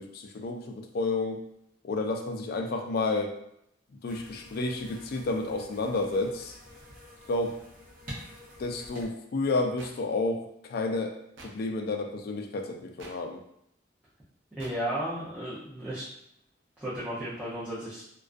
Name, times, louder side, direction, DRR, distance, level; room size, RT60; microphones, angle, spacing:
voice 1, 0.0-1.4 1.8-3.3 4.0-6.5 7.3-7.6 8.6-11.2 11.4-13.4, left 3 dB, 55° left, 4 dB, 0.3 m, -30 dB
sound 1, 4.0-9.1, equal, 45° right, 0.7 m, -47 dB
sound 2, 9.8-9.9 11.4-11.5 13.0-13.1 14.6-14.7, right 2 dB, 70° right, 0.4 m, -46 dB
voice 2, 14.5-16.0 16.8-18.0, right 1 dB, 10° right, -11 dB, 0.5 m, -34 dB
2.4 x 2.2 x 2.4 m, 0.76 s
head